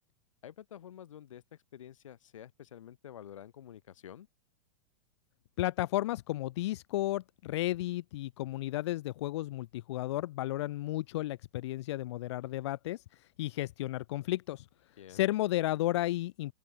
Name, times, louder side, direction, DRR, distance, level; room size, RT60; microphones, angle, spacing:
voice 1, 0.4-4.3 15.0-15.3, left 10 dB, 90° left, 6.0 m, -49 dB
voice 2, 5.6-14.7 15.1-16.5, left 16 dB, 65° left, 0.4 m, -33 dB
open air
supercardioid pair, 155°, 16 cm